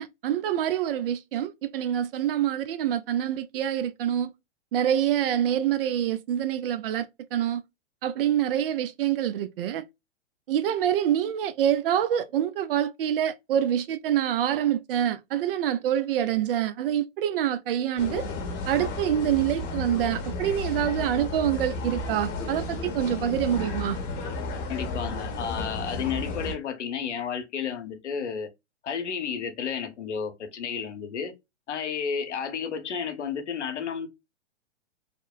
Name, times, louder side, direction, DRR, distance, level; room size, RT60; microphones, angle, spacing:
voice 1, 0.0-4.3 4.7-7.6 8.0-9.8 10.5-18.2 18.7-24.0, right 10 dB, 50° right, 0.4 m, -26 dB
sound 1, 18.0-26.5, left 2 dB, 30° left, 0.8 m, -33 dB
voice 2, 24.7-28.5 28.8-31.3 31.7-34.1, left 7 dB, 75° left, 0.8 m, -32 dB
2.9 x 2.0 x 2.3 m
hypercardioid pair, 120°, 36 cm